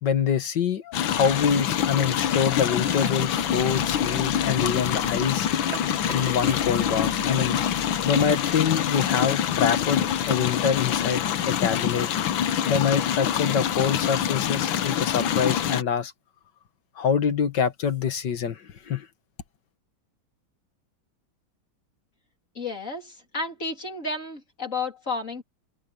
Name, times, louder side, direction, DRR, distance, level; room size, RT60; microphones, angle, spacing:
voice 1, 0.0-5.5 6.1-7.6 8.0-12.1 12.7-16.1 17.0-19.1, left 7 dB, 60° left, 2.0 m, -25 dB
sound 1, 0.9-15.8, left 9 dB, 80° left, 1.7 m, -25 dB
sound 2, 2.6-3.8 5.7-7.5 8.5-9.1 10.1-10.2 11.0-11.1, right 6 dB, 75° right, 3.0 m, -42 dB
voice 2, 22.5-25.4, left 3 dB, 40° left, 4.1 m, -32 dB
omnidirectional pair, 2.2 m